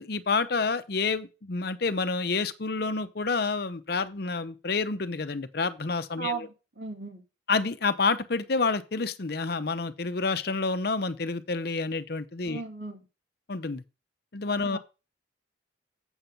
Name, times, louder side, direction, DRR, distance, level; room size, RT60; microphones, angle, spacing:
voice 1, 0.0-6.5 7.5-12.6 13.5-13.8 14.3-14.8, left 4 dB, 55° left, 0.7 m, -28 dB
voice 2, 6.2-7.2 12.4-13.0 14.6-14.8, right 4 dB, 70° right, 2.7 m, -36 dB
8.0 x 5.9 x 5.2 m
head